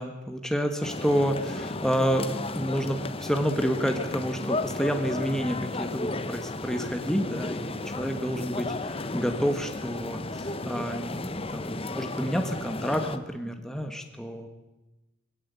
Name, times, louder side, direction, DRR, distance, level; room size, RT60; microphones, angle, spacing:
voice 1, 0.0-14.5, equal, ahead, 5 dB, 1.3 m, -29 dB
sound 1, 0.8-13.2, left 2 dB, 25° left, 0.9 m, -34 dB
21.5 x 17.5 x 8.3 m, 1.1 s
head